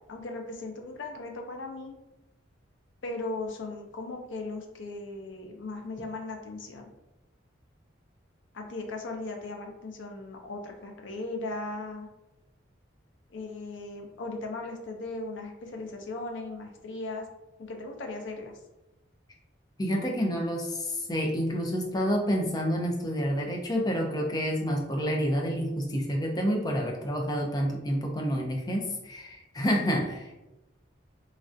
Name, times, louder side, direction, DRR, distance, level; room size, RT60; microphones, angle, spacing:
voice 1, 0.1-1.9 3.0-6.9 8.5-12.1 13.3-17.2 17.6-18.5, left 2 dB, 80° left, 3 dB, 0.5 m, -37 dB
voice 2, 19.8-30.3, equal, 20° left, 0 dB, 0.4 m, -28 dB
3.1 x 2.4 x 2.5 m, 0.97 s
head